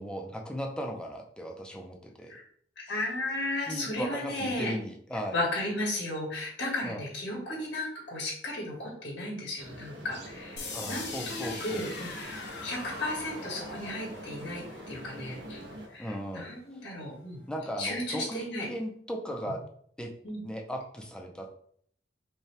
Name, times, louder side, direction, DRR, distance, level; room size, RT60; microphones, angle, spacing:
voice 1, 0.0-2.3 3.7-5.4 6.8-7.0 10.7-11.9 16.0-16.5 17.5-19.6 20.0-20.1 20.4-21.5, equal, 5° left, 1 dB, 0.5 m, -37 dB
voice 2, 2.8-4.7 5.3-15.6 15.9-17.4 17.8-18.7 20.2-20.4, left 1 dB, 85° left, -3 dB, 1.8 m, -34 dB
sound 1, 9.6-15.9, right 1 dB, 70° right, 0.9 m, -44 dB
sound 2, 10.6-16.5, left 4 dB, 65° left, 1.0 m, -43 dB
5.3 x 2.3 x 3.4 m, 0.63 s
head